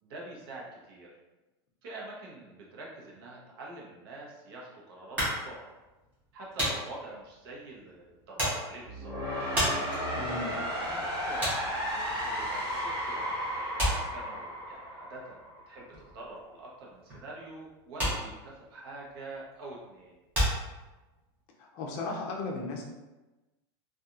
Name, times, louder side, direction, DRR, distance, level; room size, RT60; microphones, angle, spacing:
voice 1, 0.0-1.1 1.8-5.7 6.3-9.1 10.7-11.7 12.2-20.2, right 2 dB, 65° right, -4 dB, 0.8 m, -45 dB
sound 1, 5.2-13.0 13.3-21.3, equal, 15° right, 0.9 m, -34 dB
sound 2, 8.9-15.8, equal, 15° left, 1.3 m, -34 dB
voice 2, 10.2-10.6 21.6-22.8, left 3 dB, 40° left, -1 dB, 0.5 m, -35 dB
2.8 x 2.3 x 2.4 m, 1.1 s
supercardioid pair, 175°, 14 cm